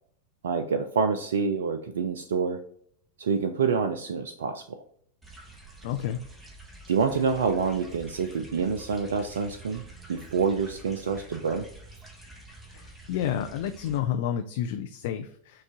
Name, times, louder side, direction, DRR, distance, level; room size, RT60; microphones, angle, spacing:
voice 1, 0.4-2.6 3.2-4.8 6.9-9.8 10.1-11.7, right 5 dB, 65° right, 7 dB, 0.3 m, -27 dB
sound 1, 5.2-14.0, right 2 dB, 10° right, 0.9 m, -48 dB
voice 2, 5.8-6.2 12.7-15.6, left 9 dB, 50° left, 8 dB, 0.3 m, -30 dB
6.0 x 2.4 x 3.7 m, 0.65 s
figure-of-eight pair, 90°, 0 cm